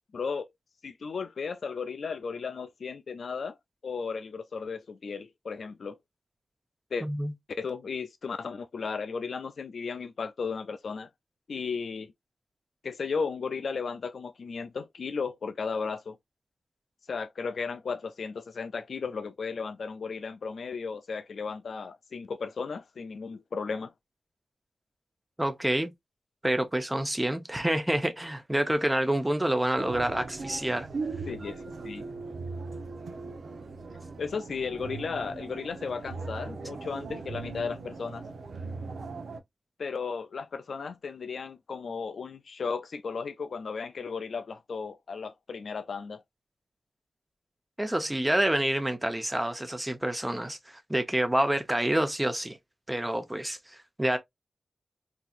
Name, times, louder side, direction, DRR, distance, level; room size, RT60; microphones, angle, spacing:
voice 1, 0.1-0.5 0.8-3.6 3.8-6.0 6.9-7.1 7.6-11.1 11.5-12.1 12.8-16.2 17.1-23.9 31.3-32.0 34.2-38.3 39.8-46.2, left 5 dB, 80° left, 0.4 m, -35 dB
voice 2, 7.0-7.3 25.4-25.9 26.4-30.9 47.8-52.6 52.9-54.2, right 1 dB, 15° right, 0.8 m, -28 dB
sound 1, 29.8-39.4, right 4 dB, 80° right, 0.8 m, -39 dB
3.8 x 2.8 x 2.4 m
wide cardioid pair, 95°, 0 cm